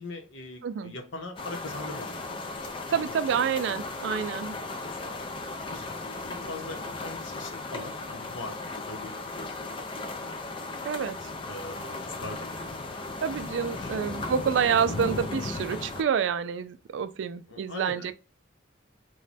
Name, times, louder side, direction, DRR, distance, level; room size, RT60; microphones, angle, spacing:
voice 1, 0.0-2.4 2.8-3.2 4.8-5.3 5.7-10.2 11.4-13.3 13.6-14.3 17.5-18.1, left 2 dB, 80° left, 0.9 m, -42 dB
voice 2, 0.6-0.9 2.9-4.6 10.8-11.2 13.2-18.1, right 7 dB, 70° right, 0.3 m, -28 dB
sound 1, 1.4-16.0, left 3 dB, 25° left, 0.4 m, -36 dB
3.1 x 2.1 x 4.0 m
head